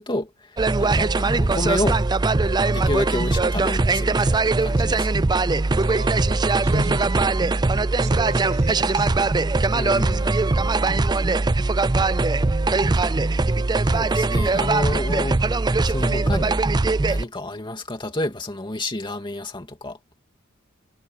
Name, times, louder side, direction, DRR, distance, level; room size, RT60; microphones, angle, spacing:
voice 1, 0.0-2.0 2.7-5.1 9.7-10.5 13.0-13.2 13.5-15.4 15.8-16.6 17.1-20.0, left 1 dB, 20° left, 2.6 m, -30 dB
sound 1, 0.6-17.2, right 3 dB, 20° right, 0.4 m, -21 dB
voice 2, 5.8-7.3 8.0-9.4, right 1 dB, 35° right, 6.1 m, -32 dB
head